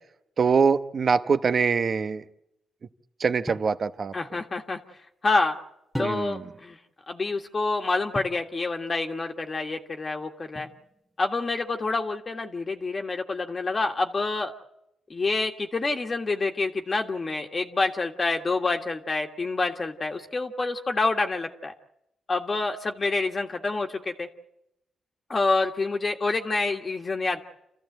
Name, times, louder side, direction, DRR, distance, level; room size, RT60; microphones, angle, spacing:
voice 1, 0.4-2.2 3.2-4.1 6.0-6.4, right 5 dB, 50° right, 11 dB, 1.0 m, -23 dB
sound 1, 3.5-3.8 5.9-6.6 8.1-8.5 10.5-11.1, equal, 5° right, 1.3 m, -37 dB
voice 2, 4.1-4.8 5.2-5.5 6.0-6.8 7.1-10.7 11.2-14.5 15.1-21.7 22.3-24.3 25.3-27.4, left 3 dB, 35° left, 3 dB, 1.7 m, -27 dB
28.0 x 14.5 x 8.0 m, 0.84 s
cardioid pair, 85°, 0 cm